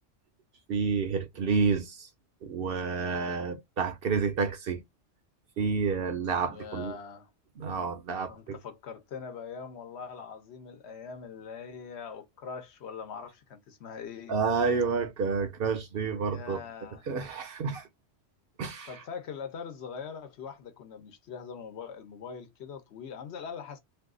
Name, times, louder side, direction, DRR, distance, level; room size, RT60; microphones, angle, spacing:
voice 1, 0.7-2.1 2.4-4.8 5.6-6.9 7.6-8.6 14.3-16.6 17.1-17.9 18.6-19.0, right 5 dB, 60° right, 0.7 m, -29 dB
voice 2, 6.5-7.3 8.3-14.3 16.3-17.0 18.9-23.8, left 6 dB, 65° left, 0.9 m, -42 dB
2.7 x 2.3 x 3.6 m
omnidirectional pair, 1.2 m